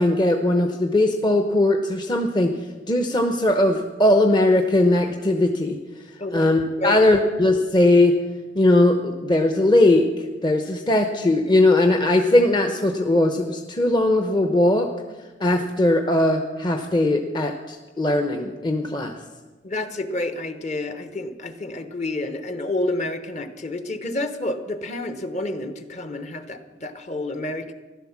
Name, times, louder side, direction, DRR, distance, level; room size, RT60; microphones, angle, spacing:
voice 1, 0.0-2.5 2.9-5.8 6.3-8.1 8.5-10.1 10.4-14.9 15.4-19.1, left 1 dB, 25° left, 5 dB, 0.8 m, -19 dB
voice 2, 19.6-27.7, left 2 dB, 40° left, 9 dB, 1.1 m, -29 dB
15.0 x 12.0 x 7.3 m, 1.3 s
head